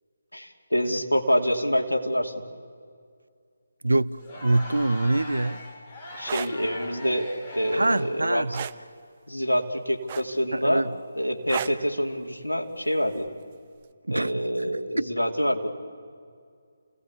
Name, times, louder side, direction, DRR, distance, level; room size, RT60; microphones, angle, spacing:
voice 1, 0.3-2.3 6.1-8.5 9.3-10.8 11.2-13.3 14.1-15.7, equal, 80° left, 2.8 m, -26 dB
voice 2, 3.8-5.6 7.7-8.7 10.5-10.9 14.1-14.3 14.7-15.1, right 2 dB, 70° right, 0.6 m, -25 dB
Crowd, 4.2-8.3, left 1 dB, 20° left, 3.4 m, -40 dB
sound 1, 6.1-6.5 8.5-8.8 10.1-10.5 11.5-11.8 13.2-13.4, right 9 dB, 30° right, 0.7 m, -32 dB
29.0 x 18.0 x 8.3 m
figure-of-eight pair, 150°, 0 cm